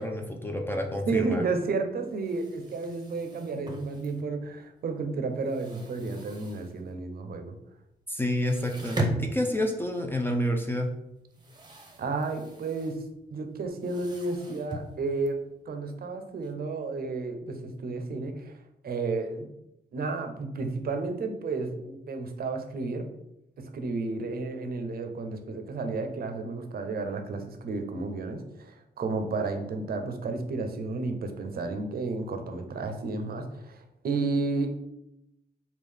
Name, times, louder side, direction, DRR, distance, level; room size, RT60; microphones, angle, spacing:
voice 1, 0.0-1.4 8.1-10.9, left 1 dB, 10° left, 2 dB, 0.5 m, -29 dB
voice 2, 1.1-7.5 12.0-13.0 13.3-18.5 18.8-19.5 19.9-23.1 23.6-34.7, right 3 dB, 55° right, 6 dB, 0.6 m, -32 dB
sound 1, 2.0-4.6 5.0-7.1 7.4-7.5 7.8-7.9 8.3-16.5, right 1 dB, 25° right, 0.8 m, -39 dB
3.6 x 2.4 x 3.3 m, 0.84 s
cardioid pair, 65°, 18 cm